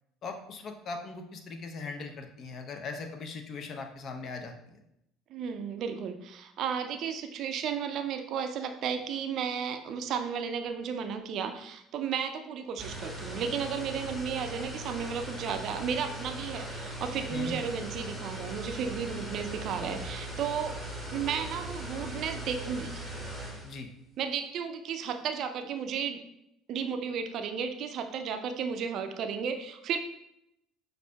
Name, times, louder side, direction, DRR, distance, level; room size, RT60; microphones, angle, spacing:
voice 1, 0.2-4.5 17.3-17.6 23.6-23.9, left 4 dB, 50° left, 5 dB, 0.6 m, -39 dB
voice 2, 5.3-20.8 21.1-23.0 24.2-26.2 26.7-30.0, right 7 dB, 55° right, 7 dB, 0.4 m, -33 dB
sound 1, 12.8-23.8, right 1 dB, 10° left, 1.3 m, -39 dB
5.9 x 2.6 x 2.2 m, 0.81 s
hypercardioid pair, 65°, 0 cm